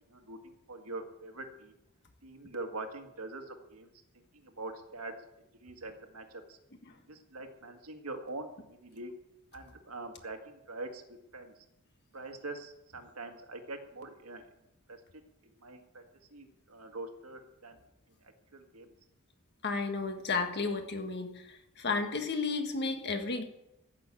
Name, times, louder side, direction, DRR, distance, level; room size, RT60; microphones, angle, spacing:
voice 1, 0.1-1.7 2.2-3.9 4.3-5.1 5.6-6.6 7.1-9.1 9.5-11.5 12.1-14.4 14.9-15.0 15.6-16.0 16.3-17.8 18.2-18.9, right 2 dB, 85° right, 5 dB, 1.9 m, -44 dB
voice 2, 19.6-21.4 21.8-23.4, left 4 dB, 50° left, 5 dB, 1.7 m, -32 dB
14.5 x 6.9 x 8.7 m, 0.89 s
head